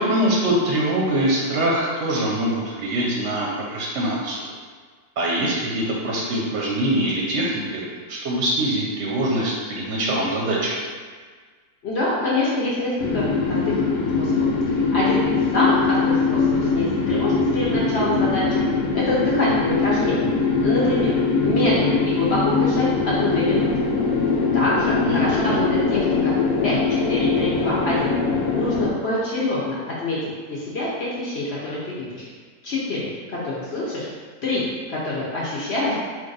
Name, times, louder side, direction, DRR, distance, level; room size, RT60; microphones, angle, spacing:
voice 1, 0.0-4.5 5.2-10.8 25.1-25.6, right 1 dB, 60° right, -3 dB, 0.8 m, -23 dB
voice 2, 11.8-13.8 14.2-14.4 14.7-18.6 18.9-20.3 20.6-21.1 21.4-23.7 24.5-26.3 26.6-28.1 28.5-30.2 30.5-32.2 32.6-34.1 34.4-34.6 34.9-35.9, left 2 dB, 55° left, -7 dB, 0.8 m, -25 dB
sound 1, 13.0-28.9, left 4 dB, 80° left, 1.1 m, -22 dB
4.4 x 2.5 x 3.8 m, 1.5 s
omnidirectional pair, 1.6 m